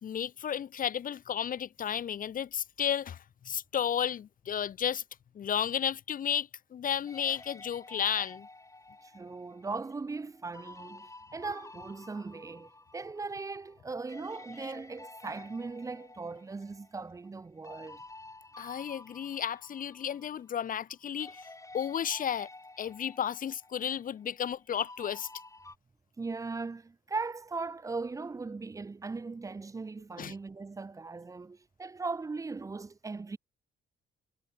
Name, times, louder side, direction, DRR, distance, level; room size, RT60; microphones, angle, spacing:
voice 1, 0.0-3.2 3.5-5.0 5.4-8.5 18.6-21.4 21.7-22.5 22.8-25.3 30.2-30.3, left 9 dB, 45° left, 0.6 m, -33 dB
sound 1, 7.1-13.8 14.1-20.9 21.2-25.8, left 2 dB, 15° left, 3.6 m, -51 dB
voice 2, 9.0-18.0 26.2-33.4, right 4 dB, 15° right, 0.4 m, -39 dB
cardioid pair, 90°, 20 cm